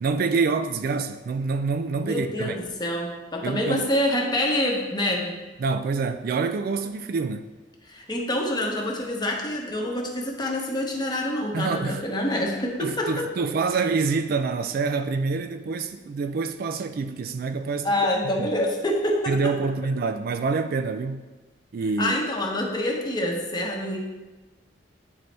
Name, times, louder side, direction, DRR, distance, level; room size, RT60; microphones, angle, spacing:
voice 1, 0.0-2.7 3.4-3.9 5.6-7.5 11.5-12.0 12.8-17.9 18.2-18.5 19.3-21.2 21.7-22.2, right 4 dB, 55° right, 8 dB, 0.3 m, -26 dB
voice 2, 2.0-5.4 7.9-13.3 17.8-19.5 22.0-24.0, left 1 dB, 25° left, 0 dB, 0.9 m, -26 dB
9.0 x 4.0 x 3.3 m, 1.2 s
head